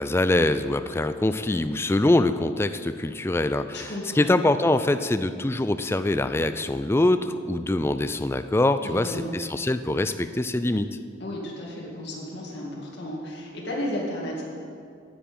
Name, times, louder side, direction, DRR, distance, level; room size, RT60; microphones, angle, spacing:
voice 1, 0.0-10.9, left 2 dB, 10° left, 11 dB, 0.3 m, -24 dB
voice 2, 3.7-4.3 8.8-9.4 11.2-14.4, left 1 dB, 55° left, -4 dB, 2.3 m, -33 dB
9.3 x 8.2 x 8.9 m, 2.3 s
head